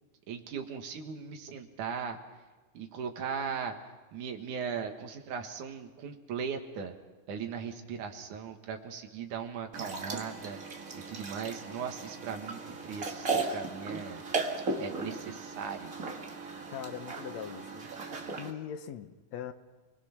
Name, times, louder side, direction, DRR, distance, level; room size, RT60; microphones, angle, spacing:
voice 1, 0.3-2.2 2.7-3.7 4.1-6.9 7.3-10.6 11.1-14.2 14.8-15.9, right 6 dB, 75° right, 4 dB, 3.1 m, -38 dB
sound 1, 9.7-18.5, right 4 dB, 30° right, 1.8 m, -37 dB
voice 2, 16.7-17.9 18.4-19.5, left 9 dB, 70° left, 9 dB, 2.1 m, -41 dB
28.0 x 20.5 x 6.0 m, 1.3 s
omnidirectional pair, 3.6 m